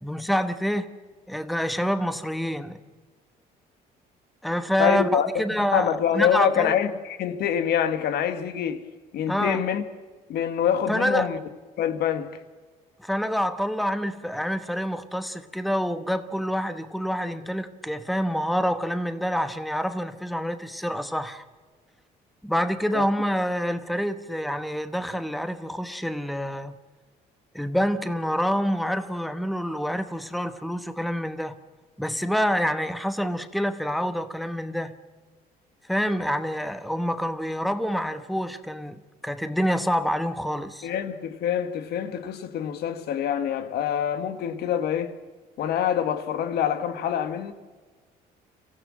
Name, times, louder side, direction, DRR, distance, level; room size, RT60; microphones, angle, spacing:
voice 1, 0.0-0.9 1.3-2.8 4.4-6.7 9.3-9.6 10.9-11.3 13.0-21.4 22.4-26.8 27.5-31.6 32.0-34.9 35.9-40.9, equal, ahead, 1.1 m, -27 dB
voice 2, 4.8-5.3 5.7-8.8 9.1-9.8 10.3-11.4 11.8-12.4 22.9-23.0 40.8-45.1 45.6-47.5, left 9 dB, 70° left, 1.5 m, -25 dB
26.0 x 15.5 x 7.5 m
cardioid pair, 110°, 17 cm